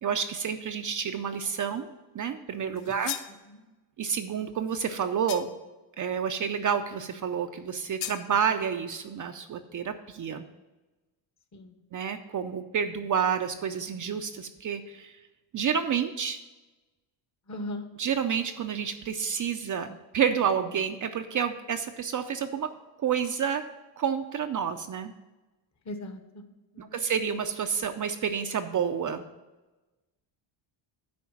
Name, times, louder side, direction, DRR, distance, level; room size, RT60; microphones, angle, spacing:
voice 1, 0.0-3.1 4.0-5.5 6.0-10.4 11.9-15.2 15.5-16.4 18.0-22.7 23.0-23.6 24.0-25.1 26.8-29.2, right 7 dB, 40° right, 7 dB, 0.5 m, -29 dB
sound 1, 2.8-3.4 5.3-5.7 8.0-8.3, left 11 dB, 80° left, 0.8 m, -36 dB
voice 2, 17.5-17.9 25.8-26.4 26.7-27.0, left 1 dB, 35° left, 8 dB, 1.0 m, -39 dB
8.6 x 4.8 x 7.0 m, 1.1 s
cardioid pair, 115°, 50 cm